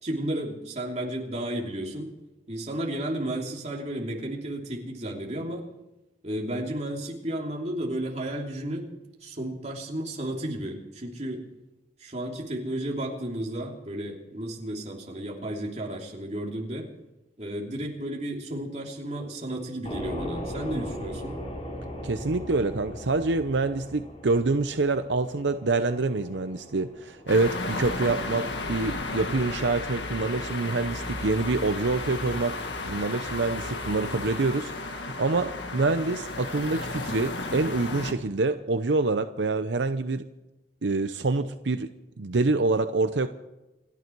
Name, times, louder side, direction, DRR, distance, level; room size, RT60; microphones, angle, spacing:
voice 1, 0.0-2.1 2.5-5.6 6.2-8.9 9.2-11.4 12.0-16.9 17.4-21.4, right 1 dB, 40° right, -1 dB, 3.0 m, -33 dB
sound 1, 19.8-31.8, equal, 35° left, 3.8 m, -40 dB
voice 2, 22.0-32.6 32.8-40.3 40.8-41.9 42.2-43.3, right 3 dB, 80° right, 9 dB, 0.7 m, -26 dB
sound 2, 27.3-38.1, left 2 dB, 80° left, 1.8 m, -34 dB
28.5 x 11.0 x 4.6 m, 0.99 s
head